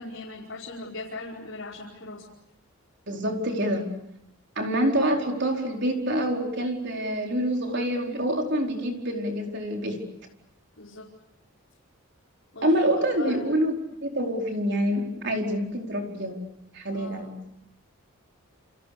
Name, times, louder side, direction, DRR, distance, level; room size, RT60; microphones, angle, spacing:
voice 1, 0.0-2.2 10.8-11.1 12.5-12.9 13.2-13.4 16.9-17.3, left 2 dB, 65° left, -5 dB, 5.2 m, -39 dB
voice 2, 3.1-4.0 4.6-10.1 12.6-16.4 16.7-17.4, equal, 50° right, 2 dB, 4.7 m, -26 dB
29.5 x 28.0 x 6.9 m, 0.78 s
head